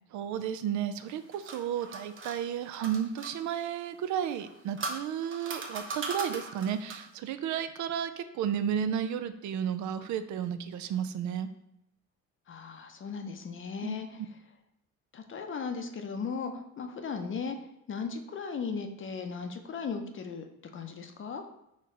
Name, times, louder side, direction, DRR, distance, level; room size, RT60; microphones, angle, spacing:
voice 1, 0.1-11.5 13.8-14.0, right 9 dB, 75° right, 11 dB, 0.4 m, -33 dB
sound 1, 1.0-3.4 4.3-7.2, right 3 dB, 40° right, 0.8 m, -39 dB
voice 2, 12.5-14.1 15.1-16.5 16.8-17.6 17.9-20.4 20.7-21.4, left 5 dB, 40° left, 5 dB, 0.6 m, -36 dB
4.3 x 3.0 x 3.6 m, 0.83 s
cardioid pair, 90°, 30 cm